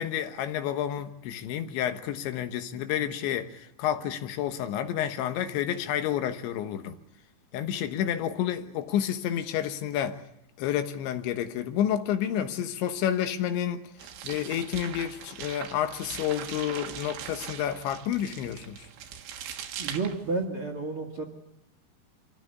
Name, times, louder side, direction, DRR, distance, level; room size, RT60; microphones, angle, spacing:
voice 1, 0.0-7.0 7.5-10.2 10.6-13.8 14.2-18.9, left 10 dB, 85° left, 3.6 m, -30 dB
sound 1, 14.0-20.5, right 9 dB, 90° right, 3.9 m, -41 dB
voice 2, 19.8-21.2, right 3 dB, 45° right, 1.9 m, -31 dB
25.5 x 15.0 x 9.7 m
omnidirectional pair, 5.1 m